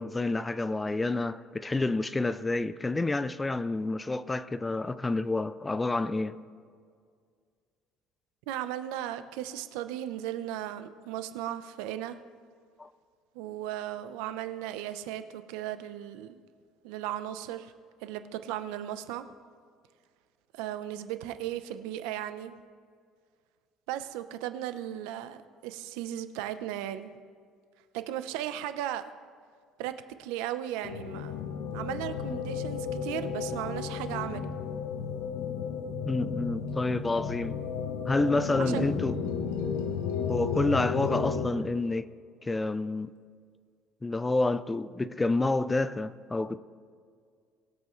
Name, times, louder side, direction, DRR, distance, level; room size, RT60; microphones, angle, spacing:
voice 1, 0.0-6.4 12.8-12.9 36.0-37.6 38.1-39.2 40.3-42.1 42.4-43.1 44.0-46.6, left 2 dB, 15° left, 0.4 m, -29 dB
voice 2, 8.5-12.2 13.3-16.4 16.8-17.7 18.0-19.3 20.5-22.5 23.9-27.1 27.9-29.1 29.8-31.4 31.7-34.5 38.6-38.9, right 12 dB, 90° right, 0.7 m, -36 dB
sound 1, 30.8-41.5, left 6 dB, 85° left, 1.1 m, -33 dB
21.5 x 8.1 x 3.2 m
cardioid pair, 135°, 0 cm